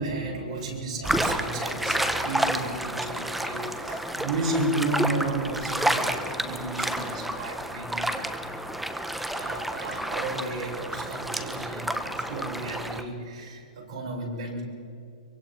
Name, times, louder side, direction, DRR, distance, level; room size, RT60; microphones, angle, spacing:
voice 1, 0.0-8.1 9.3-14.6, right 2 dB, 65° right, -2 dB, 7.6 m, -33 dB
sound 1, 1.0-13.0, right 1 dB, 5° right, 1.1 m, -30 dB
25.5 x 24.0 x 4.5 m, 2.3 s
hypercardioid pair, 145°, 4 cm